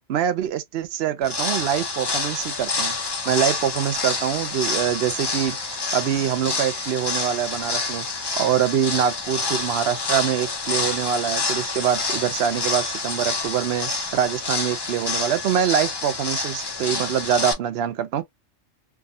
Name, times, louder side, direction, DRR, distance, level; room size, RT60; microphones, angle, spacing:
voice 1, 0.1-3.0 3.3-5.6 5.9-8.1 8.4-18.2, right 9 dB, 65° right, 0.7 m, -24 dB
sound 1, 1.2-17.5, left 4 dB, 35° left, 0.4 m, -28 dB
3.5 x 2.2 x 2.5 m
omnidirectional pair, 1.3 m